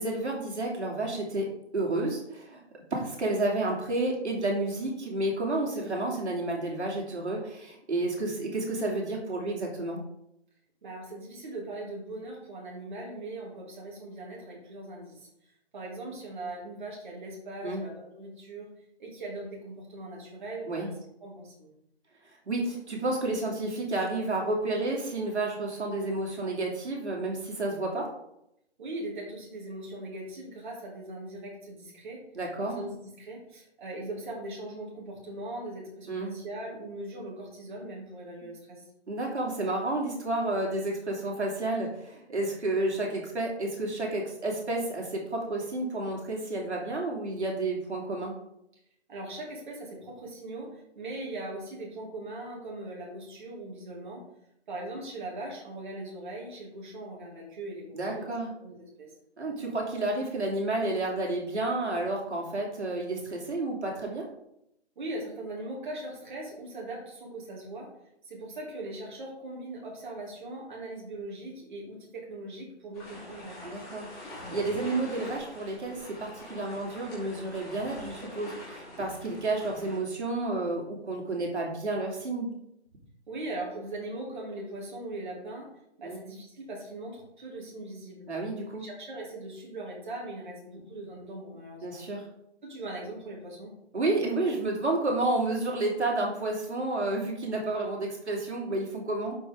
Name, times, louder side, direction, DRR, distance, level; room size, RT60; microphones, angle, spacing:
voice 1, 0.0-2.6 2.9-10.0 17.6-17.8 20.7-20.9 22.3-28.1 32.3-32.8 36.1-36.4 39.1-48.3 57.9-58.5 59.4-64.3 73.6-82.6 86.0-86.2 88.3-88.9 91.8-92.2 93.9-99.4, right 2 dB, 80° right, -1 dB, 2.8 m, -31 dB
voice 2, 10.8-15.3 15.7-18.7 19.0-20.9 21.2-21.7 28.8-32.2 32.6-38.8 49.1-54.2 54.7-58.3 58.6-59.1 65.0-67.9 68.2-73.7 83.3-85.7 86.0-88.3 88.8-92.0 92.6-93.7, right 2 dB, 45° right, -3 dB, 2.7 m, -40 dB
sound 1, 72.9-80.0, left 1 dB, 10° left, 2.4 m, -44 dB
11.5 x 4.8 x 3.7 m, 0.80 s
hypercardioid pair, 170°, 34 cm